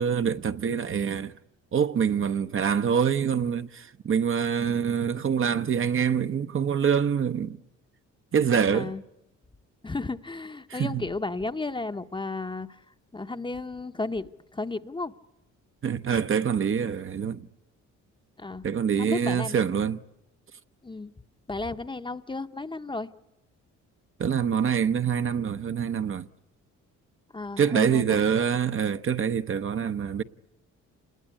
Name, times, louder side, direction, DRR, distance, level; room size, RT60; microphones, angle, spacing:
voice 1, 0.0-1.3 1.7-7.6 8.3-8.9 10.7-11.0 15.8-17.5 18.6-20.0 24.2-26.3 27.6-30.2, right 7 dB, 45° right, 0.9 m, -25 dB
voice 2, 9.8-12.8 13.1-15.1 18.4-18.7 19.0-19.5 20.8-21.1 21.5-23.1 27.3-28.2, left 3 dB, 15° left, 0.9 m, -33 dB
28.0 x 20.5 x 9.9 m
cardioid pair, 90°, 30 cm